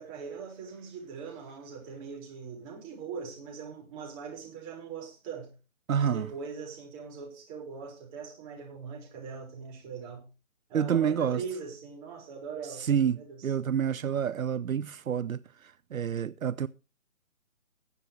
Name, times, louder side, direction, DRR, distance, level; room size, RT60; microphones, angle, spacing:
voice 1, 0.0-5.5 5.9-10.2 10.7-13.5, right 6 dB, 25° right, 5.5 m, -41 dB
voice 2, 5.9-6.3 10.7-11.4 12.8-13.2 13.4-16.7, right 8 dB, 80° right, 0.7 m, -28 dB
20.5 x 8.4 x 3.3 m
figure-of-eight pair, 150°, 41 cm